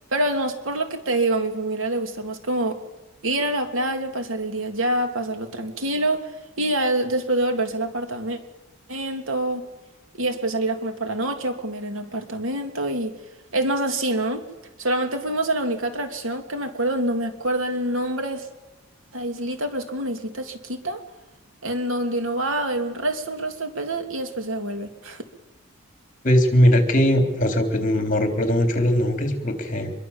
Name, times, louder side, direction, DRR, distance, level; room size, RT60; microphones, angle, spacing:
voice 1, 0.1-2.8 3.2-8.4 8.9-9.7 10.2-13.1 13.5-14.4 14.8-18.5 19.1-21.0 21.6-25.2, right 1 dB, 70° right, 6 dB, 3.1 m, -26 dB
voice 2, 26.2-29.9, equal, 35° left, 5 dB, 3.5 m, -20 dB
25.5 x 22.5 x 7.4 m, 1.0 s
head